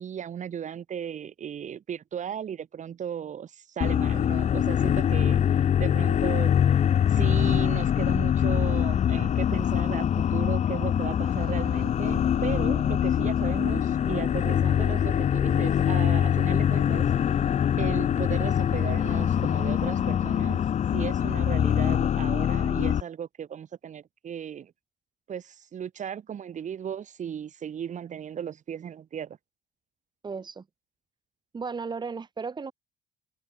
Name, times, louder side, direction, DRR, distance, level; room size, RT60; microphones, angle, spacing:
voice 1, 0.0-5.4 5.8-6.5 7.1-17.0 17.8-20.6 20.9-24.7 25.3-29.4, right 8 dB, 45° right, 3.3 m, -36 dB
sound 1, 3.8-23.0, left 9 dB, 40° left, 0.8 m, -24 dB
sound 2, 11.3-20.5, right 13 dB, 65° right, 1.9 m, -46 dB
voice 2, 30.2-30.6 31.5-32.7, right 5 dB, 25° right, 1.4 m, -34 dB
open air
cardioid pair, 110°, 17 cm